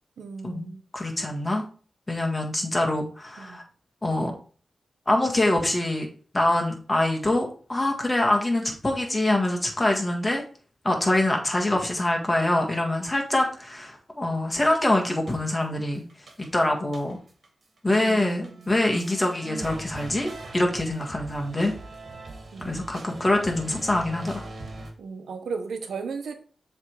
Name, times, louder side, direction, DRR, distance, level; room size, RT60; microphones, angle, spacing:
voice 1, 0.2-0.8 3.4-3.6 18.0-18.7 22.5-22.9 25.0-26.3, right 5 dB, 90° right, 7 dB, 1.0 m, -36 dB
voice 2, 0.9-1.6 2.1-3.6 4.0-4.3 5.1-6.1 6.3-10.4 10.8-16.0 16.4-17.2 17.8-21.7 22.6-24.4, left 1 dB, 20° left, 1 dB, 1.7 m, -24 dB
sound 1, 14.6-14.8 15.3-15.8 16.1-17.5 17.8-24.9, right 2 dB, 55° right, 1.7 m, -41 dB
7.2 x 3.6 x 4.7 m, 0.41 s
cardioid pair, 75°, 0 cm